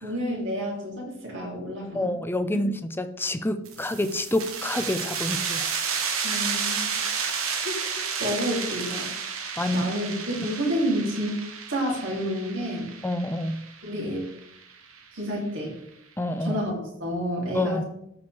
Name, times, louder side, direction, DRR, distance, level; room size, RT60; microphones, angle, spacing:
voice 1, 0.0-2.1 2.5-2.6 6.2-7.0 7.6-7.7 8.2-9.1 9.4-9.5 9.7-11.4 11.7-12.9 13.8-14.3 15.1-15.7 16.4-16.7 17.0-17.8, equal, 65° right, -3 dB, 3.2 m, -29 dB
voice 2, 1.9-5.7 9.6-9.9 13.0-13.6 16.2-16.6 17.5-17.8, left 1 dB, 10° left, 10 dB, 0.5 m, -27 dB
sound 1, 3.7-15.0, right 6 dB, 90° right, 1.2 m, -31 dB
13.0 x 4.8 x 3.5 m, 0.76 s
head